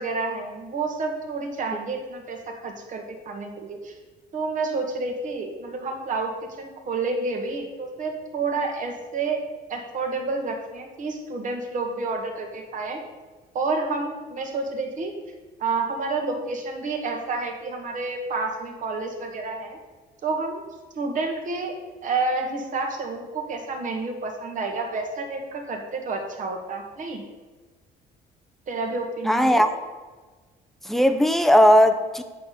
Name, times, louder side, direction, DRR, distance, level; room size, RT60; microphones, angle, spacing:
voice 1, 0.0-3.9 4.3-6.3 6.6-9.4 9.7-13.0 13.5-15.1 15.6-19.8 20.2-20.6 20.9-21.7 22.0-27.2 28.7-29.6, right 3 dB, 50° right, 3 dB, 1.6 m, -29 dB
voice 2, 29.3-29.7 30.9-32.2, equal, ahead, 8 dB, 0.6 m, -17 dB
8.4 x 4.2 x 6.5 m, 1.3 s
cardioid pair, 110°, 17 cm